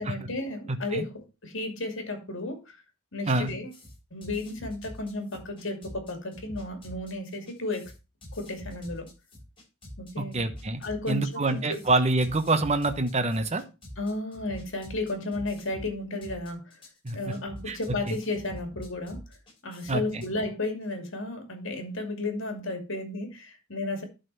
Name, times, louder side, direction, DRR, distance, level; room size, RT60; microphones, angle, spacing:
voice 1, 0.0-2.6 3.1-3.7 4.1-7.9 8.3-9.1 10.0-10.4 10.8-11.8 14.0-16.7 17.1-19.2 19.6-24.0, left 2 dB, 70° left, 2.6 m, -33 dB
voice 2, 0.7-1.0 3.3-3.5 10.2-10.8 11.1-13.6 17.0-17.2 17.7-17.8 18.1-18.2 19.9-20.2, right 2 dB, 35° right, 1.1 m, -26 dB
sound 1, 3.5-20.3, equal, 25° left, 5.8 m, -45 dB
11.5 x 4.2 x 5.5 m
head